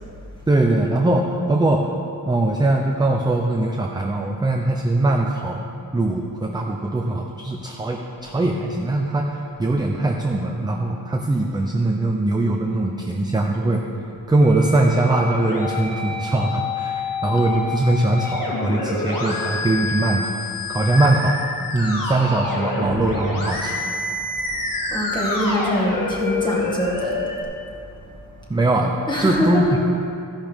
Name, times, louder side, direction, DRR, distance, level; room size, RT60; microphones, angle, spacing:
voice 1, 0.5-1.9 2.3-5.7 5.9-13.9 14.3-20.4 20.7-21.4 21.7-23.7 28.5-28.9 29.2-29.8, right 2 dB, 10° right, 1 dB, 0.5 m, -21 dB
Musical instrument, 14.4-27.4, left 3 dB, 65° left, 1.8 m, -27 dB
voice 2, 24.9-27.2 29.1-29.8, equal, 10° left, -4 dB, 1.9 m, -23 dB
14.5 x 10.5 x 3.5 m, 2.6 s
wide cardioid pair, 175°, 36 cm